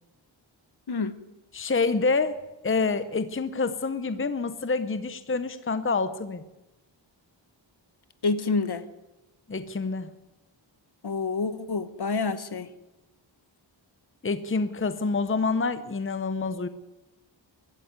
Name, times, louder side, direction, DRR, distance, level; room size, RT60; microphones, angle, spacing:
voice 1, 1.5-2.4 2.6-6.4 9.5-10.1 14.2-16.7, left 4 dB, 25° left, 0.9 m, -27 dB
voice 2, 8.2-8.8 11.0-12.7, left 4 dB, 55° left, 1.3 m, -28 dB
23.0 x 12.5 x 9.6 m
wide cardioid pair, 135°, 46 cm